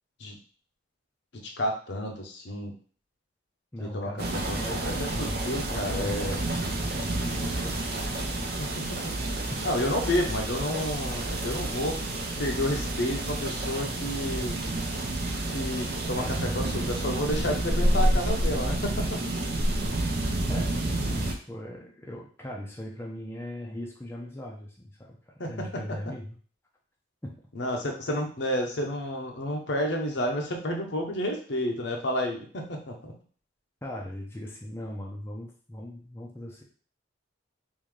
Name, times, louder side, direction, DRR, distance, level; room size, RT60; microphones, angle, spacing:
voice 1, 1.6-2.7 3.8-4.6 5.0-6.5 9.6-12.0 12.4-14.5 15.5-19.2 25.4-25.5 27.6-33.1, left 1 dB, 60° left, 1 dB, 0.8 m, -30 dB
voice 2, 3.7-4.8 5.1-5.4 5.7-8.7 9.5-9.6 16.2-16.9 20.5-26.4 27.2-27.4 33.8-36.6, left 1 dB, 15° left, -2 dB, 0.5 m, -39 dB
sound 1, 4.2-21.3, right 1 dB, 55° right, 0.6 m, -29 dB
3.6 x 2.6 x 3.2 m, 0.43 s
head